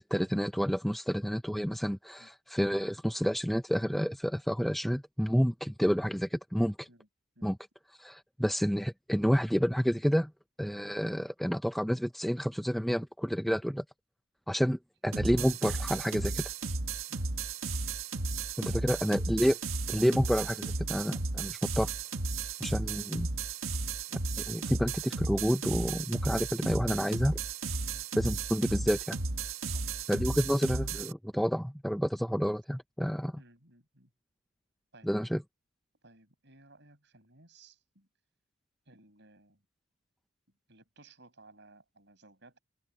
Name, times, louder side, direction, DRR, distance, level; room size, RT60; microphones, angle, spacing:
voice 1, 0.0-6.9 7.4-7.6 8.0-10.3 10.6-13.8 14.5-16.5 18.6-19.6 19.9-21.9 22.6-23.3 24.5-27.4 28.2-29.2 30.1-33.3 35.0-35.4, equal, ahead, 0.5 m, -29 dB
sound 1, 15.1-31.1, right 3 dB, 75° right, 1.6 m, -34 dB
voice 2, 18.7-19.2 27.9-28.1 29.7-30.1 30.3-30.6 33.4-34.1 34.9-35.1 36.0-38.1 38.9-39.6 40.7-42.6, right 2 dB, 55° right, 6.8 m, -59 dB
open air
head